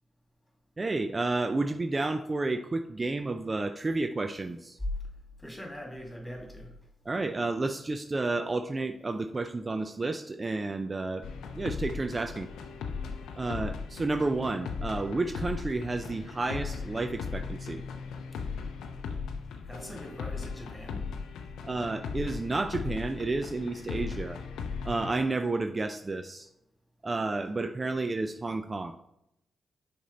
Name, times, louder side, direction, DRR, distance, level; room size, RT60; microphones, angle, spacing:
voice 1, 0.8-4.8 7.1-11.2 11.5-12.5 13.4-17.8 21.6-24.4 24.8-26.5 27.0-28.9, right 3 dB, 35° right, 7 dB, 0.4 m, -31 dB
voice 2, 5.4-6.7 19.7-21.1, equal, 10° left, 0 dB, 2.4 m, -42 dB
sound 1, 11.2-25.1, left 5 dB, 85° left, 0.5 m, -38 dB
6.1 x 4.3 x 4.0 m, 0.81 s
supercardioid pair, 45°, 0 cm